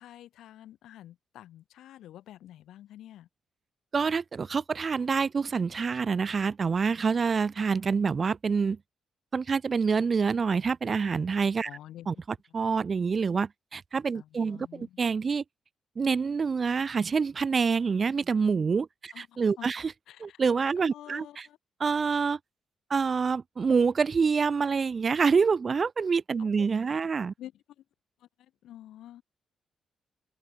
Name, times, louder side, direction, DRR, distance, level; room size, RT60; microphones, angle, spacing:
voice 1, 0.0-3.3 11.6-12.1 14.1-15.0 19.1-19.7 20.1-20.4 20.9-21.6 26.4-26.7 27.4-27.8 28.2-29.2, left 12 dB, 70° left, 3.9 m, -48 dB
voice 2, 3.9-8.8 9.3-11.7 12.1-12.2 12.5-15.4 16.0-19.9 20.2-21.3 21.8-22.4 22.9-27.3, right 5 dB, 45° right, 1.9 m, -26 dB
open air
hypercardioid pair, 40°, 0 cm